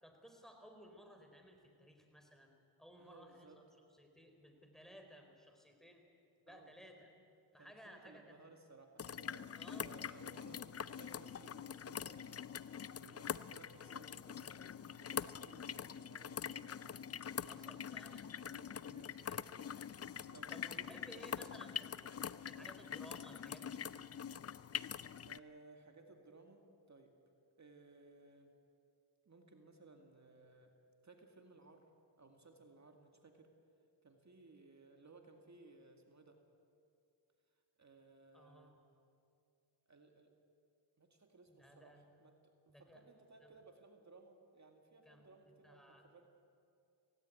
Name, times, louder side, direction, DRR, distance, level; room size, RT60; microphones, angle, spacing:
voice 1, 0.0-2.5 2.8-3.6 3.9-6.1 6.5-7.1 7.5-8.3 9.5-10.0 17.3-18.3 19.2-19.4 20.5-21.9 22.4-23.8 38.3-38.7 41.5-42.0 42.7-43.0 43.4-43.5 45.1-46.0, equal, ahead, 4 dB, 4.1 m, -58 dB
voice 2, 3.0-3.6 6.5-6.7 7.6-16.7 17.3-18.1 18.4-19.4 20.3-20.5 20.8-21.6 22.6-22.8 25.2-27.1 27.5-28.5 29.3-30.7 31.0-31.9 32.2-33.5 34.0-36.4 37.8-38.8 39.9-40.3 41.0-46.3, right 3 dB, 35° right, 4 dB, 2.2 m, -61 dB
sound 1, 9.0-25.4, left 8 dB, 30° left, 0.5 m, -44 dB
17.0 x 17.0 x 9.2 m, 2.5 s
cardioid pair, 70°, 49 cm